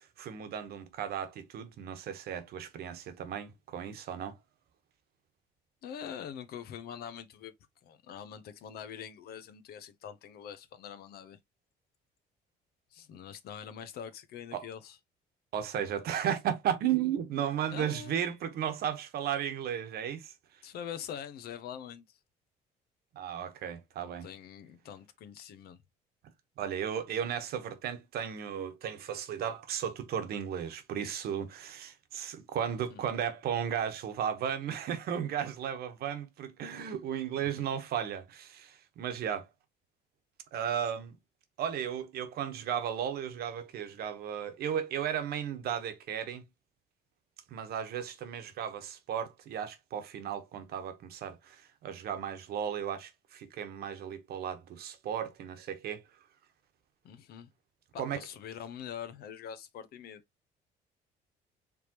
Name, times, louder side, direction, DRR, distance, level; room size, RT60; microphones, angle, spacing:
voice 1, 0.0-4.3 14.5-14.7 15.5-20.3 23.2-24.3 26.6-39.5 40.5-41.1 41.6-46.4 47.5-56.0 58.0-58.2, right 9 dB, 65° right, 1.2 m, -35 dB
voice 2, 5.8-7.5 7.8-11.4 12.9-15.0 17.7-18.3 20.6-22.2 24.0-25.8 32.9-33.0 37.3-37.6 57.0-57.5 57.9-60.2, left 8 dB, 65° left, 0.8 m, -44 dB
4.7 x 3.5 x 2.9 m
cardioid pair, 110°, 17 cm